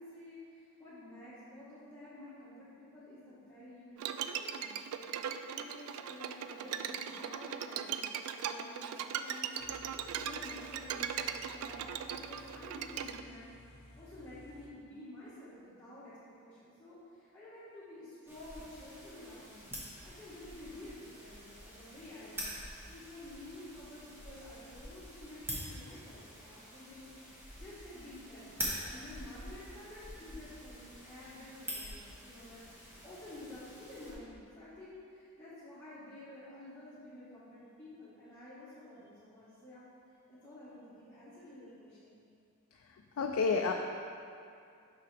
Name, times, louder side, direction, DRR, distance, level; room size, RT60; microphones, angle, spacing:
voice 1, 0.0-13.5 13.9-39.8 40.3-42.2, left 1 dB, 10° left, -15 dB, 1.4 m, -51 dB
Bowed string instrument, 4.0-13.2, right 8 dB, 90° right, 0.3 m, -39 dB
Car / Idling, 9.6-14.7, left 1 dB, 50° left, 0.8 m, -57 dB
sound 1, 18.3-34.1, equal, 10° right, 1.1 m, -46 dB
voice 2, 42.7-43.7, left 4 dB, 75° left, 2 dB, 0.4 m, -31 dB
6.6 x 5.8 x 3.3 m, 2.5 s
head